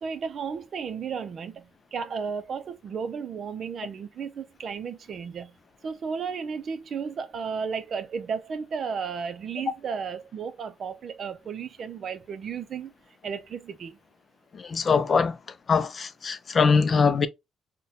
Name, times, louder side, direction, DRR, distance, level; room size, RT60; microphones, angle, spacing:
voice 1, 0.0-5.6 5.8-12.9 13.2-14.0, right 6 dB, 55° right, 0.4 m, -34 dB
voice 2, 14.5-15.4 15.7-17.3, left 5 dB, 40° left, 0.4 m, -22 dB
3.9 x 2.2 x 2.6 m
cardioid pair, 90°, 0 cm